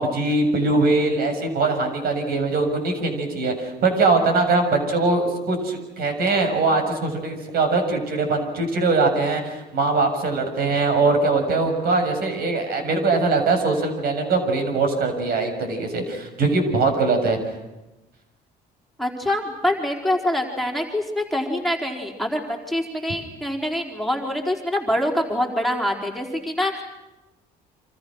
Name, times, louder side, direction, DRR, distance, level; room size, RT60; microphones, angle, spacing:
voice 1, 0.0-17.4, right 3 dB, 65° right, 6 dB, 7.0 m, -22 dB
voice 2, 19.0-26.8, left 1 dB, ahead, 1 dB, 4.5 m, -25 dB
29.0 x 26.5 x 6.4 m, 1.0 s
cardioid pair, 110°, 17 cm